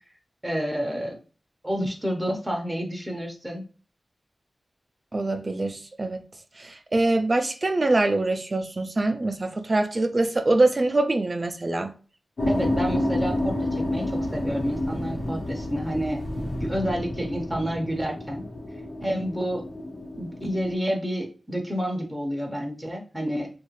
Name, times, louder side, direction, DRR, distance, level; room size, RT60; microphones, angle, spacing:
voice 1, 0.4-1.2 1.6-3.6 12.5-18.4 19.0-19.6 20.2-23.5, equal, 10° right, 0.7 m, -29 dB
voice 2, 5.1-6.2 6.6-11.9, right 2 dB, 35° right, 0.4 m, -24 dB
sound 1, 12.4-20.7, left 1 dB, 65° left, 1.1 m, -29 dB
3.1 x 2.4 x 3.0 m
wide cardioid pair, 90°, 0 cm